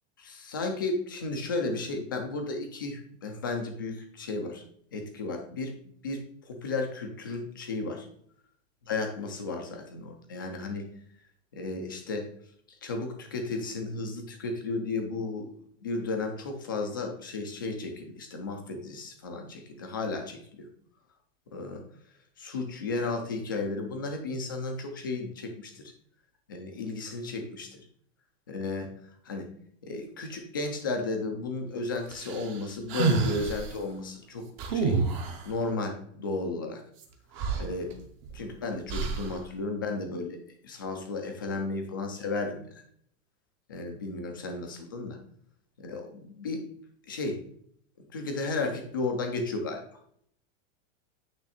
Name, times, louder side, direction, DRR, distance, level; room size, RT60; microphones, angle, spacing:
voice 1, 0.2-4.6 4.9-5.8 6.0-8.1 8.8-10.9 11.5-12.3 12.8-15.5 15.8-20.7 21.5-21.8 22.4-25.9 26.5-27.7 28.5-29.0 29.2-29.5 29.8-35.0 35.4-36.8 37.5-38.0 38.3-42.7 43.7-45.2 45.8-46.7 47.1-47.4 48.1-49.8, left 3 dB, 20° left, 4 dB, 0.3 m, -34 dB
sound 1, 32.1-33.7 34.6-35.5 37.0-37.1 37.4-38.3 38.9-39.4, right 4 dB, 25° right, 0.6 m, -29 dB
8.8 x 3.2 x 4.1 m, 0.65 s
supercardioid pair, 180°, 38 cm